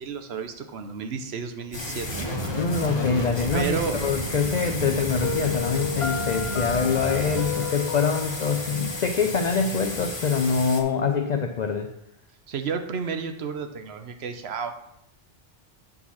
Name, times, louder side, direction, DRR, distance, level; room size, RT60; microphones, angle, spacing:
voice 1, 0.0-2.3 3.5-4.0 12.5-14.8, right 6 dB, 85° right, 7 dB, 1.0 m, -31 dB
sound 1, 1.7-10.8, left 1 dB, 25° left, 1.0 m, -34 dB
sound 2, 2.1-7.5, right 2 dB, 50° right, 1.0 m, -34 dB
voice 2, 2.6-11.9, left 5 dB, 50° left, 5 dB, 0.6 m, -25 dB
Piano, 5.2-10.2, left 6 dB, 75° left, 1.0 m, -34 dB
8.6 x 4.0 x 5.7 m, 0.80 s
omnidirectional pair, 1.1 m